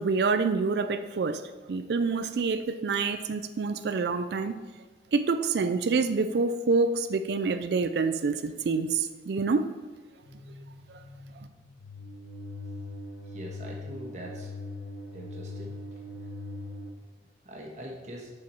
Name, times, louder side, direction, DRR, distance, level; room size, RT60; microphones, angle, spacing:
voice 1, 0.0-4.6 5.1-9.7, right 4 dB, 70° right, 10 dB, 0.4 m, -27 dB
sound 1, 10.2-16.9, left 2 dB, 85° left, 1.0 m, -41 dB
voice 2, 13.3-14.5 15.1-15.7 17.4-18.3, equal, 40° right, -2 dB, 1.4 m, -42 dB
7.1 x 4.9 x 4.6 m, 1.3 s
head